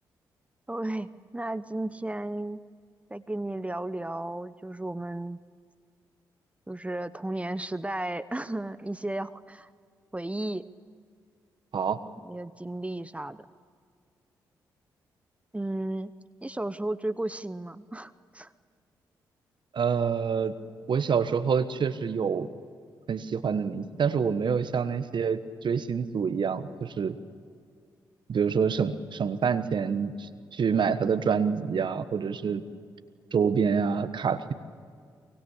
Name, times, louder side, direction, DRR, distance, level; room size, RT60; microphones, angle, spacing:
voice 1, 0.7-2.6 3.1-5.4 6.7-9.7 10.1-10.7 12.2-13.5 15.5-16.1 16.4-18.5 32.5-32.7, right 1 dB, 15° right, 14 dB, 0.9 m, -34 dB
voice 2, 19.7-20.5 20.9-22.5 23.1-27.2 28.3-32.6 33.3-34.5, right 6 dB, 55° right, 11 dB, 1.3 m, -27 dB
23.5 x 23.5 x 8.4 m, 2.1 s
hypercardioid pair, 40°, 9 cm